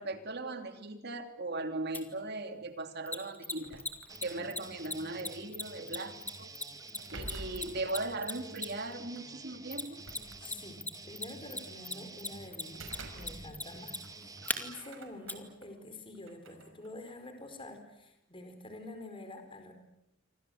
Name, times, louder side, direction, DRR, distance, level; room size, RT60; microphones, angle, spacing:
voice 1, 0.0-3.8 4.2-6.5 7.1-10.0, right 2 dB, 55° right, 7 dB, 3.0 m, -38 dB
Mechanisms, 1.9-2.0 3.1-8.9 9.7-10.5 10.8-14.6 15.3-15.4, left 2 dB, 10° left, 2.5 m, -37 dB
sound 1, 3.5-4.6 6.6-7.9 9.1-9.3 9.8-10.9 12.5-13.7 14.0-15.7 16.1-17.8, right 2 dB, 80° right, 5.3 m, -49 dB
sound 2, 4.1-14.8, right 3 dB, 20° right, 1.7 m, -50 dB
voice 2, 10.4-19.7, left 2 dB, 25° left, 7 dB, 4.5 m, -47 dB
28.5 x 25.5 x 7.9 m, 0.83 s
head